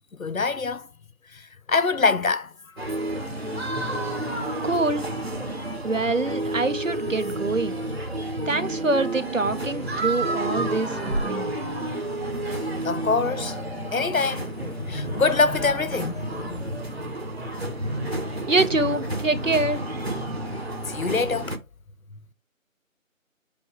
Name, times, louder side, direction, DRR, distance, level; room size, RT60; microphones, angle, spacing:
voice 1, 0.2-0.9 1.3-2.5 12.8-16.7 20.9-21.6, left 4 dB, 80° left, 0.9 m, -25 dB
sound 1, 2.8-21.6, right 1 dB, 50° right, 1.4 m, -30 dB
voice 2, 4.6-5.1 5.8-7.8 8.5-11.5 18.3-19.8, right 3 dB, 65° right, 1.2 m, -25 dB
6.2 x 5.3 x 3.2 m
figure-of-eight pair, 175°, 41 cm